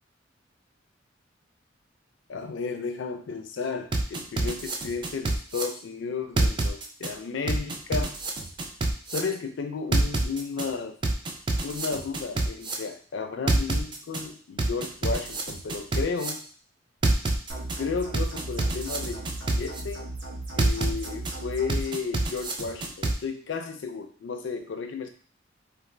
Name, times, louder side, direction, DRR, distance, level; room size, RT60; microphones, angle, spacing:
voice 1, 2.3-8.1 9.1-11.0 11.6-16.4 17.8-20.1 20.6-25.1, left 5 dB, 70° left, 6 dB, 0.4 m, -33 dB
sound 1, 3.9-5.6 6.4-7.1 7.5-9.2 9.9-10.7 11.0-12.7 13.5-14.2 14.6-16.3 17.0-17.8 18.1-19.8 20.6-21.3 21.7-23.1, right 2 dB, 25° right, 0.3 m, -26 dB
sound 2, 17.5-21.9, right 2 dB, 70° right, 0.8 m, -37 dB
2.4 x 2.3 x 3.2 m, 0.43 s
head